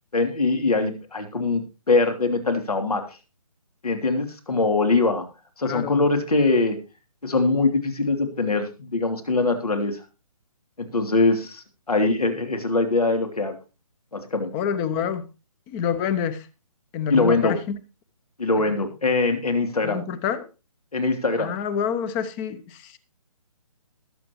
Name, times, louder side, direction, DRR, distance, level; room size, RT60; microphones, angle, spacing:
voice 1, 0.1-3.2 3.8-5.3 5.6-6.8 7.2-10.0 10.8-13.6 14.1-14.5 17.1-17.5 18.4-20.0 20.9-21.5, left 3 dB, 85° left, 5 dB, 3.1 m, -22 dB
voice 2, 5.6-6.0 14.5-15.3 15.7-16.5 16.9-17.8 18.6-18.8 19.8-20.4 21.4-23.0, left 8 dB, 15° left, 15 dB, 0.8 m, -27 dB
20.5 x 7.7 x 3.1 m, 0.30 s
figure-of-eight pair, 150°, 19 cm